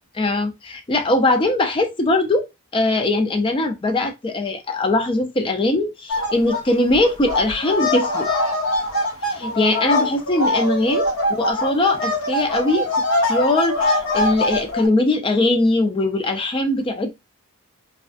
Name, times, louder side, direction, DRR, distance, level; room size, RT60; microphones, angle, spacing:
voice 1, 0.2-2.5 2.7-8.3 9.2-12.9 13.2-17.1, left 2 dB, 25° left, 0.4 m, -21 dB
sound 1, 6.1-6.6 6.9-14.9, left 1 dB, 70° left, 0.9 m, -22 dB
2.3 x 2.1 x 2.5 m
head